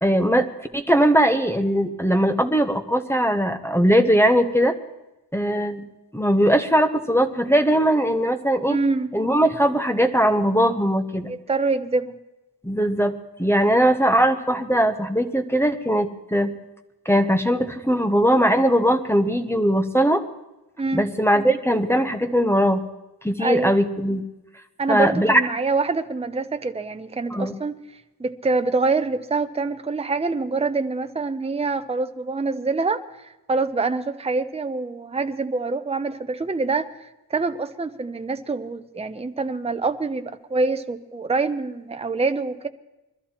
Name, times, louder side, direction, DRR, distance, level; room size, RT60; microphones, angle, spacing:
voice 1, 0.0-0.5 0.7-4.8 5.3-5.8 6.1-8.8 9.1-11.3 12.6-16.5 17.0-20.2 20.9-22.8 23.2-24.2 24.9-25.4 27.3-27.5, equal, 5° left, 5 dB, 0.9 m, -20 dB
voice 2, 8.7-9.1 11.3-12.1 20.8-21.0 23.4-23.8 24.8-27.8 28.2-36.9 37.3-42.7, right 3 dB, 15° right, 8 dB, 0.7 m, -25 dB
22.0 x 13.5 x 4.4 m, 0.99 s
wide cardioid pair, 145°, 41 cm